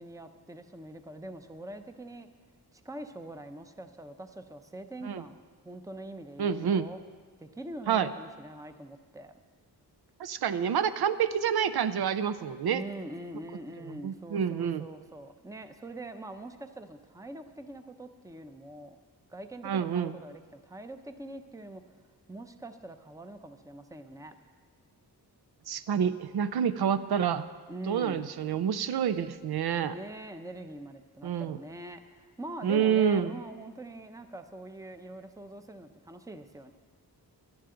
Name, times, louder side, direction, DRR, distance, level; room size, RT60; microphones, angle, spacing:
voice 1, 0.0-2.3 2.7-7.0 7.4-9.3 12.7-19.0 19.3-21.8 22.3-24.4 27.7-28.3 29.8-36.7, right 1 dB, 10° right, 8 dB, 0.6 m, -44 dB
voice 2, 6.4-6.9 7.9-8.1 10.2-12.8 14.0-14.8 19.6-20.2 25.7-27.5 27.9-29.9 31.2-31.6 32.6-33.3, right 8 dB, 75° right, 13 dB, 0.5 m, -28 dB
17.0 x 11.5 x 3.8 m, 1.5 s
wide cardioid pair, 120°, 39 cm